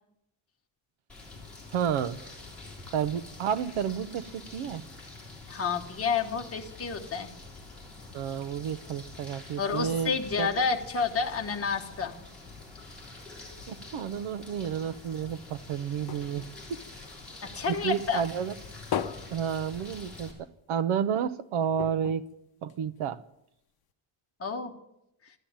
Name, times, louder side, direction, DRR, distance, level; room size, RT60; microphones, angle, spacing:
sound 1, 1.1-20.3, left 3 dB, ahead, 3.8 m, -46 dB
voice 1, 1.7-2.2 2.9-4.8 8.1-10.5 13.7-16.8 17.7-18.5 19.3-22.3 22.6-23.2, right 8 dB, 90° right, 14 dB, 0.9 m, -31 dB
voice 2, 5.5-7.3 9.6-12.2 17.4-18.2 24.4-24.7, left 5 dB, 30° left, 2 dB, 1.3 m, -30 dB
sound 2, 15.2-17.8 18.2-20.4 20.8-20.9 21.2-21.3 21.7-23.3 23.9-24.0, left 8 dB, 50° left, 0.9 m, -39 dB
13.5 x 11.5 x 8.8 m, 0.82 s
cardioid pair, 180°, 49 cm